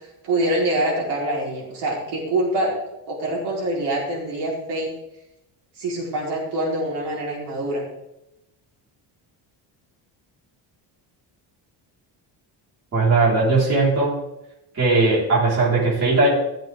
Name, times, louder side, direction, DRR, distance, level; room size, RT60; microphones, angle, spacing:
voice 1, 0.2-2.7 3.1-4.9 5.8-7.8, right 1 dB, 65° right, -3 dB, 4.3 m, -25 dB
voice 2, 12.9-14.2 14.7-16.3, right 3 dB, 35° right, -7 dB, 4.6 m, -18 dB
14.0 x 7.6 x 3.7 m, 0.87 s
cardioid pair, 150°, 44 cm